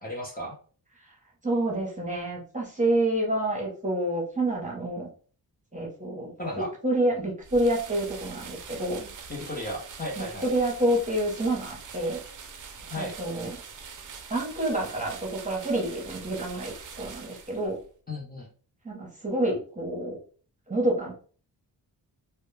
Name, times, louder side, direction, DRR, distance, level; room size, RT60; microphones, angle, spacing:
voice 1, 0.0-0.5 6.4-6.7 9.3-10.5 12.9-13.2 18.1-18.5, left 1 dB, 20° left, -2 dB, 0.6 m, -34 dB
voice 2, 1.4-5.1 5.7-6.3 6.8-9.1 10.2-12.2 13.0-13.6 14.3-17.8 18.8-20.2 20.7-21.1, right 1 dB, 20° right, -2 dB, 0.8 m, -28 dB
sound 1, 7.4-17.8, right 5 dB, 50° right, 0.5 m, -44 dB
2.1 x 2.1 x 3.1 m, 0.42 s
wide cardioid pair, 105°, 42 cm